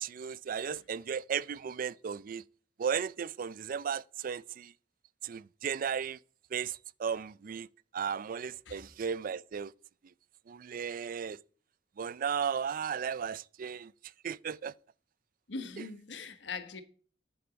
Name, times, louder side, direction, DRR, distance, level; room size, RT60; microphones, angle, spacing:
voice 1, 0.0-2.4 2.8-4.7 5.2-6.2 6.5-7.7 7.9-9.7 10.5-11.4 12.0-13.9 14.2-14.7 15.8-15.9, right 7 dB, 50° right, 0.4 m, -35 dB
voice 2, 15.5-16.8, left 4 dB, 70° left, 1.2 m, -41 dB
10.0 x 8.8 x 5.2 m
head